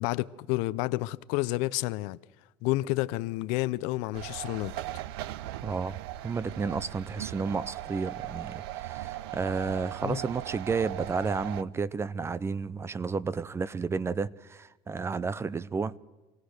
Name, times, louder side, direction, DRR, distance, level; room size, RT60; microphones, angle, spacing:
voice 1, 0.0-2.2 2.6-4.7 10.0-10.2, left 19 dB, 75° left, 0.6 m, -30 dB
sound 1, 4.1-11.6, right 15 dB, 90° right, 0.6 m, -38 dB
voice 2, 5.6-16.0, right 4 dB, 20° right, 0.6 m, -32 dB
26.5 x 16.0 x 6.5 m
supercardioid pair, 115°, 13 cm